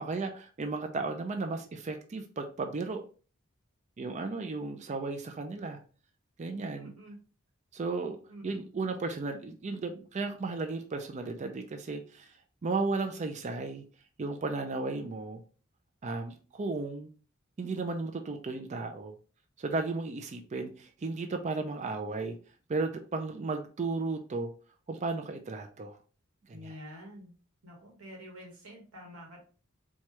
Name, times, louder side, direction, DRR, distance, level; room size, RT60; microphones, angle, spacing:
voice 1, 0.0-3.0 4.0-5.8 6.4-6.9 7.7-8.2 8.4-12.3 12.6-13.8 14.2-15.4 16.0-17.1 17.6-19.1 19.6-22.4 22.7-24.5 24.9-26.0 26.5-26.6, right 3 dB, 35° right, 5 dB, 0.4 m, -34 dB
voice 2, 6.8-7.2 8.3-8.7 26.5-27.3 27.6-29.4, equal, 85° right, -1 dB, 1.4 m, -48 dB
4.4 x 2.3 x 3.0 m, 0.38 s
head